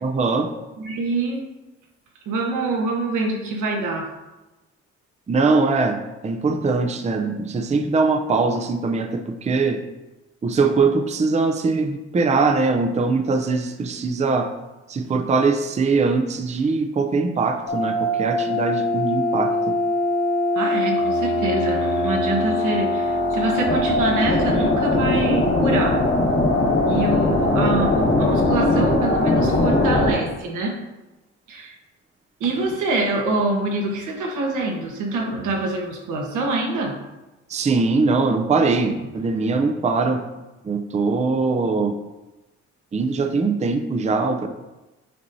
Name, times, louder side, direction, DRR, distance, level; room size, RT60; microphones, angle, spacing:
voice 1, 0.0-0.5 5.3-9.8 10.4-14.5 14.9-19.8 37.5-40.2 40.6-41.9 42.9-44.5, right 4 dB, 25° right, 6 dB, 0.5 m, -21 dB
voice 2, 0.8-1.4 2.2-4.1 20.5-26.0 26.8-30.7 31.5-31.7 32.4-36.9, right 2 dB, 85° right, 0 dB, 1.4 m, -25 dB
sound 1, 17.7-30.1, left 2 dB, 35° left, 1.2 m, -21 dB
8.4 x 4.2 x 2.7 m, 1.1 s
cardioid pair, 90°, 30 cm